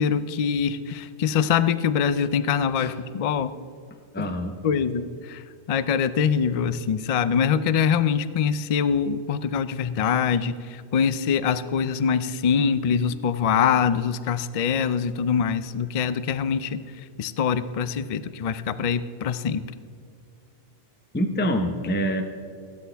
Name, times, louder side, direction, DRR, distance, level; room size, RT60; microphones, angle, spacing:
voice 1, 0.0-3.5 4.2-4.3 4.6-5.4 5.7-16.8 17.2-19.6, left 7 dB, 60° left, 13 dB, 0.3 m, -24 dB
voice 2, 4.1-4.5 21.1-22.2, equal, 10° left, 6 dB, 0.6 m, -25 dB
16.0 x 12.5 x 3.4 m, 2.4 s
omnidirectional pair, 1.2 m